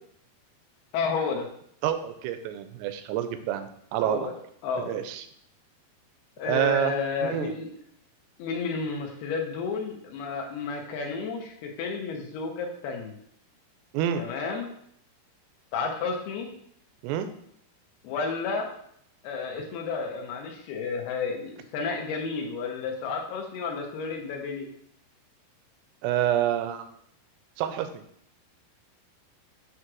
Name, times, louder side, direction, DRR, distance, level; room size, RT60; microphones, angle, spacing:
voice 1, 0.9-1.5 4.0-4.3 4.6-5.0 6.4-7.7 8.4-13.1 14.2-14.7 15.7-16.5 18.0-18.7 19.2-24.7, left 4 dB, 75° left, 2 dB, 3.2 m, -31 dB
voice 2, 1.8-4.3 4.8-5.2 6.5-6.9 7.2-7.5 13.9-14.3 17.0-17.3 26.0-26.9 27.6-28.0, right 11 dB, 85° right, 9 dB, 2.7 m, -27 dB
9.1 x 3.2 x 6.1 m, 0.69 s
omnidirectional pair, 4.7 m